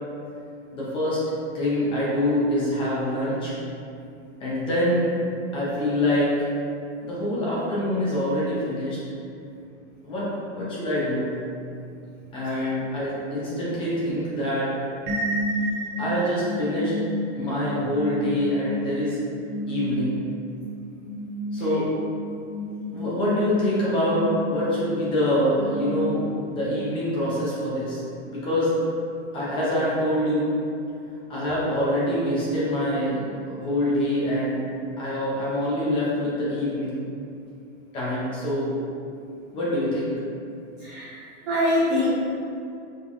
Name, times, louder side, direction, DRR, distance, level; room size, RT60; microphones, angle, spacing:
voice 1, 0.7-1.2 1.5-3.5 4.4-5.1 5.5-6.5 7.0-9.0 10.0-11.3 12.3-14.7 16.0-17.0 17.3-19.2 19.7-20.2 21.5-21.9 22.9-28.0 28.3-28.7 29.3-30.5 31.3-34.6 35.0-37.1 37.9-38.7 39.5-40.1, left 1 dB, 15° left, -8 dB, 0.8 m, -25 dB
sound 1, 15.1-26.7, equal, 45° right, 0.8 m, -31 dB
voice 2, 40.8-41.1 41.5-42.1, left 1 dB, 15° right, -11 dB, 0.4 m, -23 dB
5.2 x 3.3 x 2.6 m, 2.5 s
supercardioid pair, 165°, 35 cm